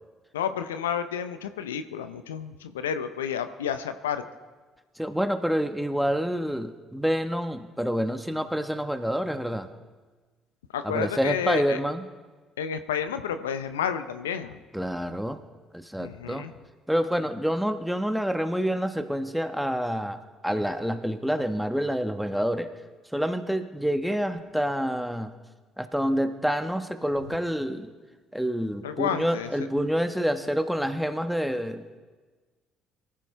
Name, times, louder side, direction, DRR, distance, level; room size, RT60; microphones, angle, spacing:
voice 1, 0.3-4.2 10.7-11.8 12.6-14.6 16.0-16.5 28.8-29.5, left 8 dB, 85° left, 10 dB, 0.6 m, -30 dB
voice 2, 5.0-9.7 10.8-12.1 14.7-15.4 15.7-16.4 16.9-22.7 23.1-25.3 25.8-27.9 28.3-32.0, equal, ahead, 8 dB, 1.3 m, -27 dB
23.0 x 14.5 x 3.4 m, 1.4 s
hypercardioid pair, 50°, 0 cm